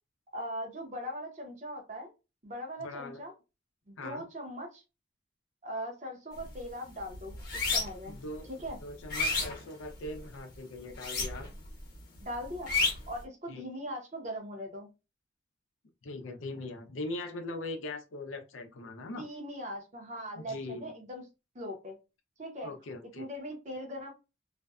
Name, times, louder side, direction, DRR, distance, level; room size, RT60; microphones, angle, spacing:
voice 1, 0.3-2.1 2.4-3.3 3.9-4.8 5.6-8.2 8.6-8.8 12.2-14.9 19.1-21.3 21.5-21.9 22.4-22.7 23.2-24.1, equal, 35° right, 0.8 m, -40 dB
voice 2, 2.8-3.2 4.0-4.2 8.1-8.5 8.8-11.5 13.5-13.7 16.0-19.2 20.4-20.9 22.6-23.3, left 2 dB, 80° left, 0.6 m, -41 dB
sound 1, 6.3-6.6 7.0-8.1 8.6-10.3 10.9-11.7 11.9-13.2, left 3 dB, 50° left, 0.9 m, -31 dB
2.5 x 2.2 x 2.3 m
head